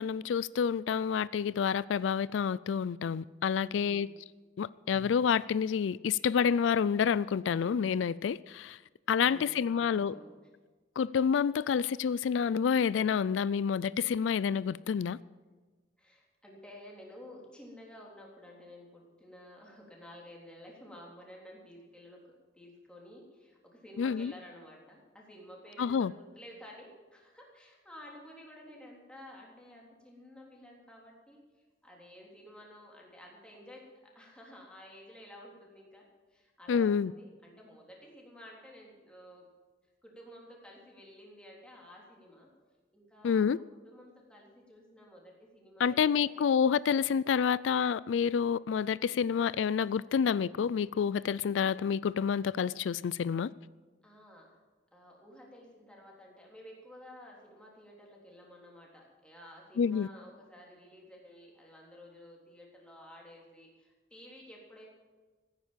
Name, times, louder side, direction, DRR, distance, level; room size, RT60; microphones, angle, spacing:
voice 1, 0.0-4.1 4.6-8.8 9.1-10.1 11.0-15.2 24.0-24.3 25.8-26.1 36.7-37.1 43.2-43.6 45.8-53.5 59.8-60.1, left 7 dB, 90° left, 0.4 m, -28 dB
voice 2, 3.5-4.1 9.2-10.3 16.0-31.4 31.8-39.5 40.0-42.5 42.9-46.5 47.1-47.3 54.0-54.5 54.9-64.8, equal, 5° left, 3.5 m, -52 dB
16.0 x 9.7 x 7.4 m
head